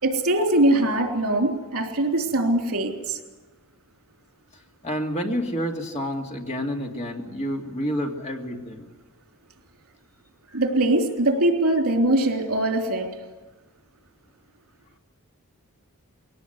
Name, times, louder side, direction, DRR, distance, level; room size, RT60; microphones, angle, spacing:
voice 1, 0.0-3.2 10.5-13.1, right 1 dB, 80° right, 2 dB, 3.3 m, -22 dB
voice 2, 4.8-8.9, equal, 30° left, 2 dB, 2.3 m, -29 dB
21.5 x 18.0 x 8.0 m, 1.2 s
head